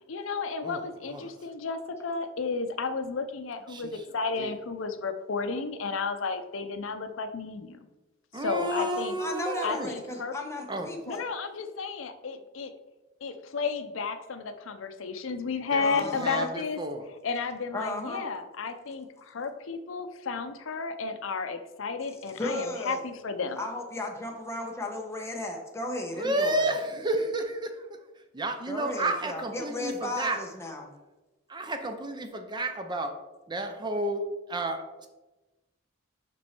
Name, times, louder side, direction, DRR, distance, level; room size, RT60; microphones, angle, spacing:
voice 1, 0.1-7.8 8.4-9.2 9.6-10.3 11.1-12.7 13.2-16.8 17.2-23.6, left 4 dB, 75° left, 9 dB, 0.6 m, -33 dB
voice 2, 0.6-1.3 3.7-4.5 8.3-9.9 10.7-10.9 15.7-17.1 26.1-30.4 31.5-33.1 33.5-35.1, right 1 dB, 20° right, 6 dB, 0.6 m, -32 dB
voice 3, 8.8-11.2 15.8-16.5 17.7-18.3 22.3-23.0 23.6-26.6 28.7-30.9, left 2 dB, 15° left, 1 dB, 1.0 m, -35 dB
6.1 x 5.3 x 4.4 m, 1.1 s
head